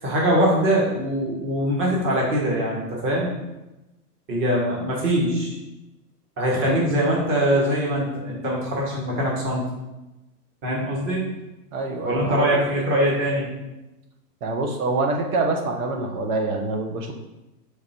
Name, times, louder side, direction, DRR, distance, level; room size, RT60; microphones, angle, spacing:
voice 1, 0.0-3.3 4.3-5.5 6.4-9.6 10.6-11.3 12.0-13.5, equal, 25° right, -4 dB, 1.7 m, -22 dB
voice 2, 11.7-12.6 14.4-17.1, right 3 dB, 60° right, 3 dB, 1.4 m, -25 dB
6.4 x 3.4 x 4.4 m, 0.99 s
hypercardioid pair, 125°, 47 cm